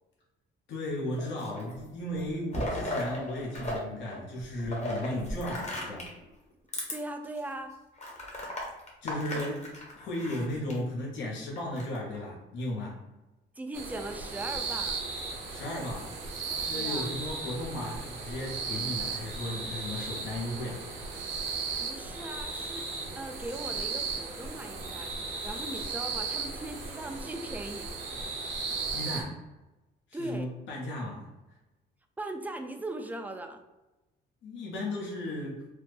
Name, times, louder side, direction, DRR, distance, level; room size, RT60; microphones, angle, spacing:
voice 1, 0.7-6.1 9.0-9.7 9.9-13.0 15.5-16.1 16.5-20.8 28.9-29.4 30.1-31.6 34.4-35.7, left 1 dB, 70° left, -3 dB, 0.8 m, -35 dB
sound 1, 1.1-1.8 2.2-3.8 4.0-6.2 6.7-6.9 7.4-7.5 8.0-10.8 11.6-12.2, left 1 dB, 35° left, 1.0 m, -36 dB
voice 2, 6.9-7.7 9.3-9.5 13.6-15.0 16.7-17.1 21.6-28.0 30.1-30.5 32.2-33.6, right 1 dB, 10° right, 5 dB, 0.3 m, -39 dB
sound 2, 13.7-29.2, right 4 dB, 75° right, 0.7 m, -36 dB
3.1 x 2.0 x 3.2 m, 1.0 s
cardioid pair, 90°, 20 cm